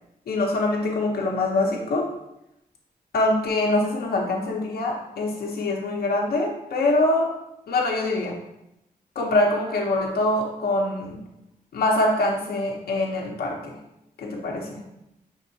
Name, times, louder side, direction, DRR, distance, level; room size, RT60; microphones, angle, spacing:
voice 1, 0.3-2.1 3.1-7.3 7.7-8.3 9.2-11.2 11.7-13.7 14.2-14.8, left 2 dB, 85° left, -1 dB, 0.7 m, -24 dB
5.3 x 3.6 x 2.7 m, 0.85 s
cardioid pair, 75°, 16 cm